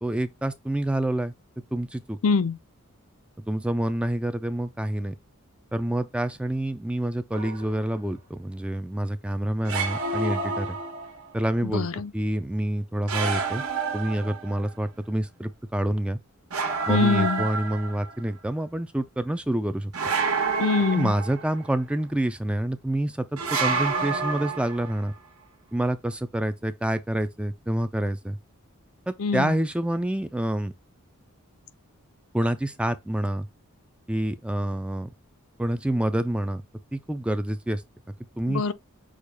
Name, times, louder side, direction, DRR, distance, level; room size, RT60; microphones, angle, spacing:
voice 1, 0.0-1.3 1.7-2.2 3.5-5.1 5.7-10.8 11.3-13.6 13.9-16.2 16.9-19.9 20.9-25.1 25.7-28.4 29.1-30.7 32.3-33.5 34.1-35.1 35.6-36.6 36.9-37.8 38.4-38.6, right 1 dB, 5° right, 0.3 m, -27 dB
voice 2, 2.2-2.6 11.6-12.1 16.9-17.4 20.6-21.1 29.2-29.5 38.5-38.7, left 4 dB, 65° left, 0.5 m, -24 dB
sound 1, 7.3-7.9 9.6-11.3 13.1-14.8 16.5-18.2 19.9-21.7 23.4-25.0, right 4 dB, 85° right, 1.3 m, -29 dB
6.4 x 2.3 x 3.4 m
head